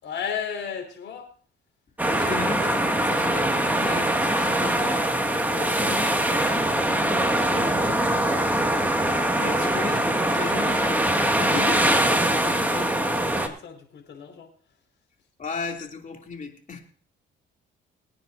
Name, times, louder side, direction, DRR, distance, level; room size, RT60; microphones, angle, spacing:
voice 1, 0.0-1.3 5.5-8.2 11.1-11.7 12.1-14.5, left 7 dB, 65° left, 3 dB, 5.0 m, -37 dB
voice 2, 2.0-5.1 5.6-6.6 9.3-11.1 11.4-11.9 15.4-16.8, left 4 dB, 40° left, 2 dB, 2.9 m, -35 dB
sound 1, 2.0-13.5, right 1 dB, 10° right, 2.1 m, -23 dB
24.0 x 9.6 x 2.7 m, 0.43 s
cardioid pair, 90°, 20 cm